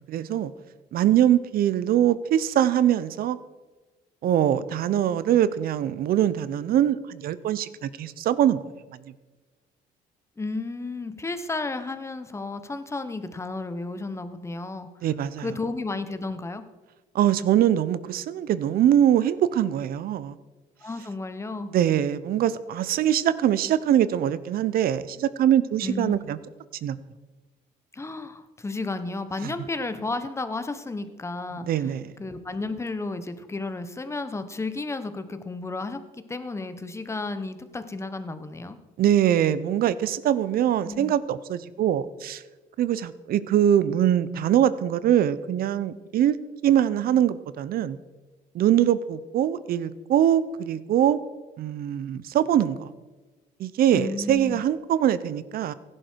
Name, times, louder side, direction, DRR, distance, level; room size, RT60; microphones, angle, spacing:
voice 1, 0.1-0.5 0.9-3.4 4.2-8.6 15.0-15.5 17.1-20.3 21.7-26.4 26.8-27.0 29.4-29.5 31.6-32.1 39.0-42.4 42.8-46.3 46.6-48.0 48.5-51.2 51.6-52.9 53.6-55.7, right 10 dB, 60° right, 16 dB, 0.8 m, -23 dB
voice 2, 10.4-14.9 15.4-16.6 20.8-21.7 25.8-26.2 27.9-31.9 32.2-36.0 36.3-38.8 40.8-41.1 53.9-54.6, left 3 dB, 15° left, 10 dB, 1.2 m, -32 dB
16.5 x 11.0 x 4.6 m, 1.2 s
cardioid pair, 110°, 17 cm